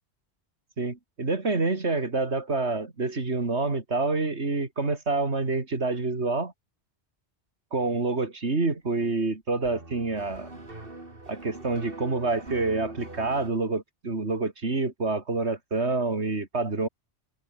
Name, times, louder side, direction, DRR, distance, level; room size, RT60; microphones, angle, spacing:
voice 1, 0.8-6.5 7.7-10.5 11.3-16.9, right 3 dB, 80° right, 3.3 m, -27 dB
sound 1, 9.6-13.5, right 2 dB, 55° right, 4.0 m, -42 dB
omnidirectional pair, 1.1 m